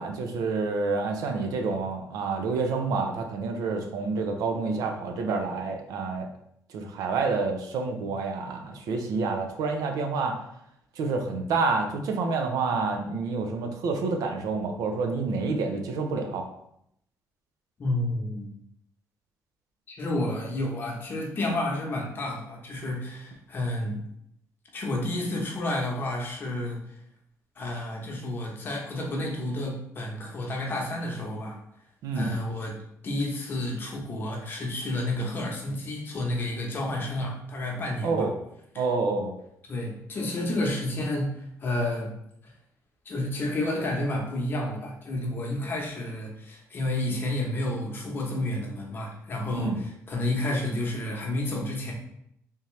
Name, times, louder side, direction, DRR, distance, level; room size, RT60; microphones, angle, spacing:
voice 1, 0.0-6.3 6.7-10.3 11.0-16.5 32.0-32.3 38.0-38.3 38.8-39.3 49.5-49.8, right 4 dB, 85° right, 4 dB, 0.6 m, -28 dB
voice 2, 17.8-18.5 19.9-24.0 24.7-27.0 27.6-31.6 32.1-32.8 33.0-38.3 38.7-38.8 39.7-42.1 42.4-42.5 43.0-51.9, left 1 dB, 35° left, -1 dB, 0.9 m, -30 dB
3.5 x 2.8 x 3.1 m, 0.74 s
cardioid pair, 145°, 6 cm